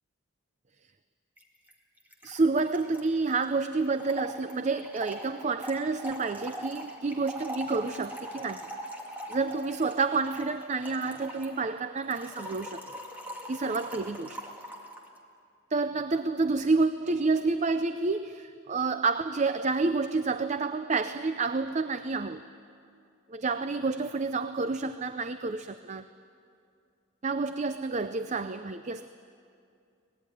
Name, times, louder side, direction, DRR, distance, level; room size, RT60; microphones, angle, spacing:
Trickle dribble / Fill (with liquid), 1.4-1.5 1.7-1.8 2.0-15.1, equal, 10° right, 2.2 m, -42 dB
voice 1, 2.2-8.7 9.3-12.8 13.5-14.4 15.7-22.4 23.3-26.1 27.2-29.1, right 3 dB, 35° right, 11 dB, 0.5 m, -29 dB
24.0 x 19.5 x 10.0 m, 2.5 s
head